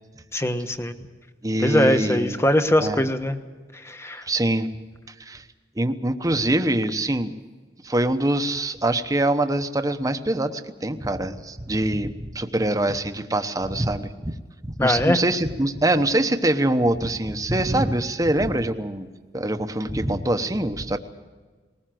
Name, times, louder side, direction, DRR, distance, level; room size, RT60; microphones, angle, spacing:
voice 1, 0.3-0.9 1.6-3.4 3.7-4.2 14.8-15.2, left 1 dB, 15° left, 8 dB, 1.2 m, -21 dB
voice 2, 1.4-2.4 2.8-3.0 4.3-4.7 5.2-5.4 5.8-7.3 7.8-14.3 14.6-19.1 19.3-21.0, right 1 dB, 20° right, 8 dB, 1.1 m, -24 dB
20.5 x 19.5 x 7.7 m, 1.4 s
head